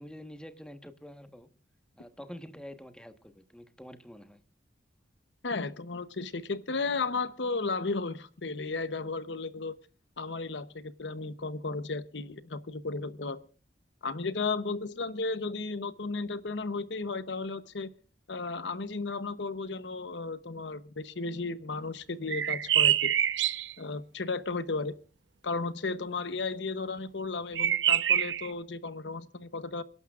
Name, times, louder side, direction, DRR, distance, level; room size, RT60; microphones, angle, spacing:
voice 1, 0.0-1.5 2.0-4.4, equal, 5° left, 7 dB, 1.3 m, -47 dB
voice 2, 5.4-9.7 10.2-13.4 14.0-17.9 18.3-23.1 23.8-25.0 25.4-29.8, left 3 dB, 70° left, 13 dB, 0.9 m, -34 dB
sound 1, 22.3-23.7 27.5-28.5, right 11 dB, 75° right, 0.8 m, -25 dB
28.5 x 11.5 x 2.4 m, 0.38 s
head